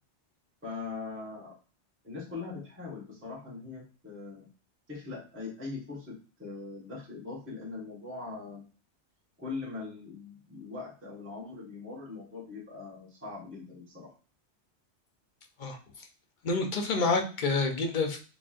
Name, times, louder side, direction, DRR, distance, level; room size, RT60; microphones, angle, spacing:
voice 1, 0.6-1.5 2.0-4.5 4.9-8.6 9.4-14.1, left 4 dB, 10° right, -6 dB, 1.2 m, -41 dB
voice 2, 16.4-18.2, left 3 dB, 50° left, 3 dB, 0.7 m, -28 dB
4.0 x 3.1 x 2.4 m, 0.37 s
omnidirectional pair, 1.2 m